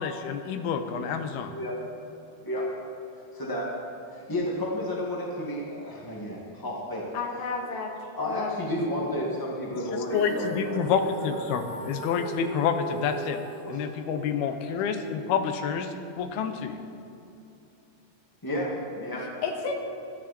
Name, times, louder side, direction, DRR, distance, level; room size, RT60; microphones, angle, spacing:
voice 1, 0.0-1.5 9.9-13.4 13.7-16.8, left 6 dB, 75° left, 7 dB, 2.7 m, -28 dB
voice 2, 3.3-3.7 4.1-7.0 8.1-10.9 18.4-19.3, left 1 dB, 30° left, -4 dB, 0.4 m, -31 dB
voice 3, 7.1-7.9 8.2-8.7 9.0-9.1 19.4-19.7, left 4 dB, 90° left, 1 dB, 3.8 m, -32 dB
Female singing, 10.1-16.3, right 2 dB, 70° right, 3.8 m, -39 dB
25.0 x 10.5 x 4.4 m, 2.8 s
omnidirectional pair, 4.7 m